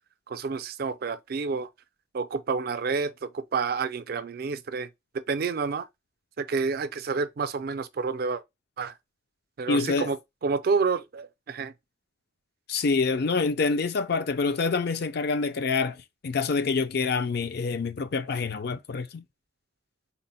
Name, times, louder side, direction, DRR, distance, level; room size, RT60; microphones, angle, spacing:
voice 1, 0.3-1.7 2.1-4.9 5.3-5.8 6.4-8.4 8.8-8.9 9.6-10.2 10.4-11.7, right 4 dB, 50° right, 0.4 m, -29 dB
voice 2, 9.7-10.1 12.7-19.2, left 4 dB, 55° left, 0.4 m, -26 dB
4.0 x 2.1 x 4.0 m
head